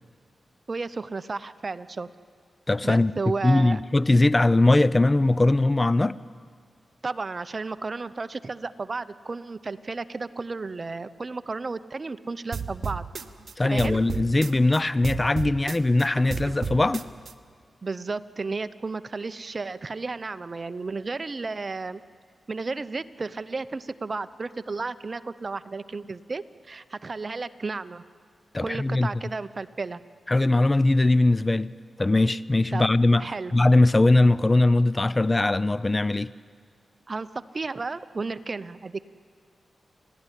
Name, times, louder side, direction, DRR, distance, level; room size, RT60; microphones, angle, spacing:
voice 1, 0.7-2.1 2.8-3.8 7.0-13.0 13.7-14.0 17.8-22.0 22.5-28.0 28.6-30.0 32.7-32.8 33.2-33.6 37.1-37.3 37.5-39.0, right 3 dB, 45° right, 0.7 m, -33 dB
voice 2, 2.7-3.1 3.4-6.1 13.6-17.0 28.5-29.1 30.3-31.7 32.0-33.3 33.5-36.3, left 2 dB, 25° left, 0.5 m, -20 dB
sound 1, 12.5-14.8 15.0-17.3, right 6 dB, 65° right, 1.0 m, -33 dB
29.5 x 12.5 x 10.0 m
cardioid pair, 65°, 0 cm